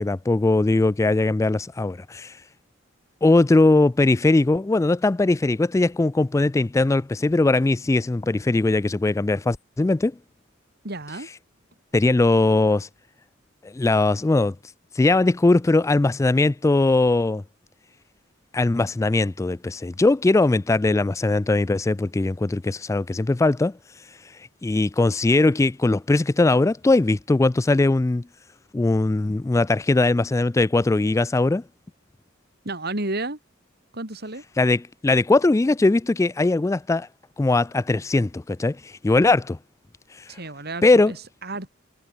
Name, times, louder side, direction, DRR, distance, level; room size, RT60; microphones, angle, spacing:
voice 1, 0.0-2.3 3.2-10.1 11.9-12.9 13.6-14.5 15.0-17.4 18.5-23.7 24.6-28.2 28.7-31.6 34.6-37.1 37.4-39.6 40.8-41.1, left 2 dB, 15° left, 0.3 m, -20 dB
voice 2, 10.8-11.3 32.6-33.4 33.9-34.4 40.3-41.2 41.4-41.7, right 2 dB, 55° right, 4.9 m, -31 dB
head